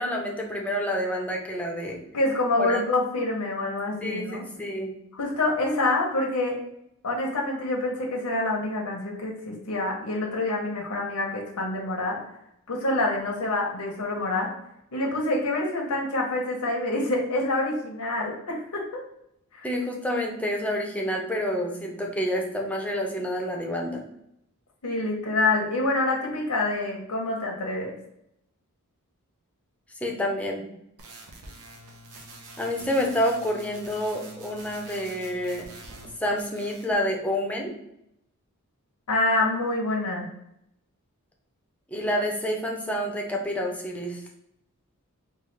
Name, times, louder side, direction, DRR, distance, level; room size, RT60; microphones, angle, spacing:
voice 1, 0.0-2.0 2.6-2.8 4.0-4.9 19.6-24.0 30.0-30.6 32.6-35.7 36.2-37.7 41.9-44.2, equal, 5° left, 0 dB, 0.5 m, -28 dB
voice 2, 2.1-4.5 5.2-6.6 7.0-12.2 12.7-14.5 14.9-19.0 19.5-19.7 24.8-27.9 39.1-40.3, left 2 dB, 80° left, -1 dB, 0.8 m, -26 dB
sound 1, 31.0-36.1 36.4-36.9, right 2 dB, 85° right, 0.7 m, -46 dB
3.8 x 2.4 x 3.2 m, 0.78 s
head